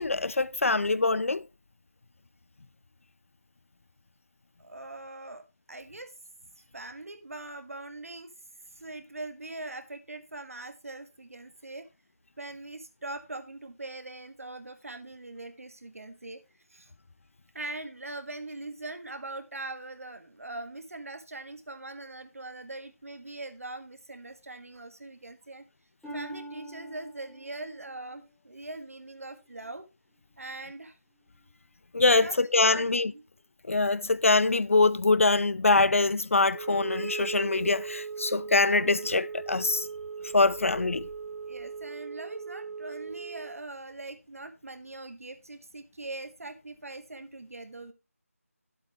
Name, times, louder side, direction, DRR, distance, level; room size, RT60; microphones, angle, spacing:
voice 1, 0.0-1.4 31.9-33.1 33.7-39.9 40.3-41.1, left 3 dB, 60° left, 0.4 m, -24 dB
voice 2, 4.6-6.1 6.7-8.3 8.7-11.9 12.4-16.4 16.7-16.9 17.5-25.6 26.1-29.8 30.4-31.0 32.0-32.4 32.6-33.2 41.4-47.9, right 2 dB, 65° right, 1.6 m, -42 dB
Harp, 26.0-29.8 30.3-30.7 31.4-31.5, right 1 dB, ahead, 0.6 m, -46 dB
Wind instrument woodwind instrument, 36.5-43.6, right 5 dB, 85° right, 0.7 m, -39 dB
10.0 x 7.9 x 3.4 m
figure-of-eight pair, 175°, 8 cm